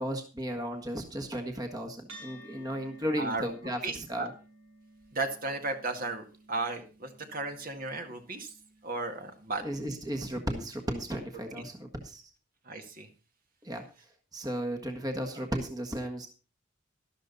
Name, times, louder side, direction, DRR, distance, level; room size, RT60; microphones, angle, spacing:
voice 1, 0.0-4.3 9.6-12.2 13.6-13.8 14.3-16.3, equal, 20° right, 4 dB, 1.6 m, -35 dB
sound 1, 2.1-10.8, right 1 dB, 85° right, 6.1 m, -56 dB
voice 2, 3.8-4.3 5.1-8.5 8.8-9.6 12.7-13.1, right 3 dB, 45° right, 5 dB, 1.9 m, -34 dB
12.5 x 12.5 x 4.0 m, 0.34 s
head